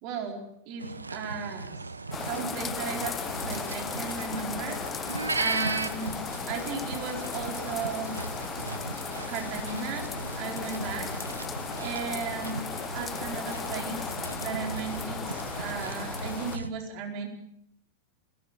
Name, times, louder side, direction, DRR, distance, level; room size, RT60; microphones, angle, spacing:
voice 1, 0.0-1.8 2.2-5.1 5.4-6.2 6.5-8.2 9.3-10.1 10.4-11.1 11.8-17.3, right 5 dB, 45° right, 2 dB, 4.6 m, -36 dB
sound 1, 0.8-16.7, right 3 dB, 80° right, 1.0 m, -37 dB
sound 2, 2.1-16.6, left 7 dB, 20° left, 1.0 m, -37 dB
20.5 x 18.0 x 8.0 m, 0.76 s
figure-of-eight pair, 90°, 0 cm